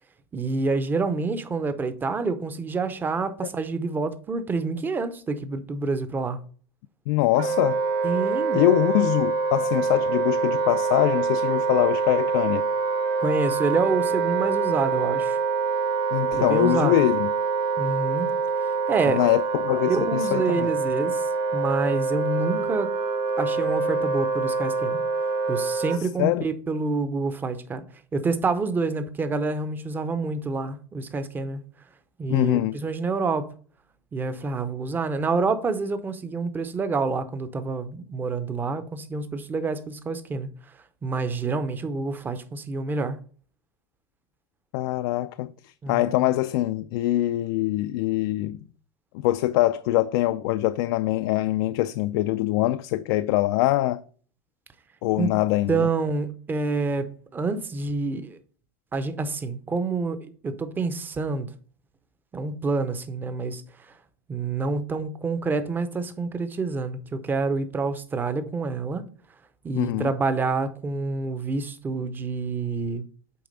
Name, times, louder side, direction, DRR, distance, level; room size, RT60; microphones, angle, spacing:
voice 1, 0.3-6.4 8.0-8.6 13.2-15.4 16.3-17.0 17.8-18.3 18.6-19.2 19.8-22.9 23.4-25.0 25.5-27.8 28.1-31.6 32.2-33.5 34.1-40.5 41.0-43.2 45.8-46.0 55.1-55.3 55.7-58.4 58.9-61.5 62.3-63.6 64.3-69.0 69.6-73.0, right 3 dB, 15° right, 0.6 m, -27 dB
voice 2, 7.1-7.8 8.5-12.6 16.1-17.3 19.1-20.7 26.2-26.4 32.3-32.8 44.7-45.5 45.9-48.6 49.1-54.0 55.0-55.9 69.7-70.1, left 16 dB, 60° left, 0.4 m, -23 dB
Wind instrument woodwind instrument, 7.4-26.0, right 4 dB, 60° right, 1.9 m, -25 dB
8.3 x 3.4 x 5.3 m
supercardioid pair, 150°, 14 cm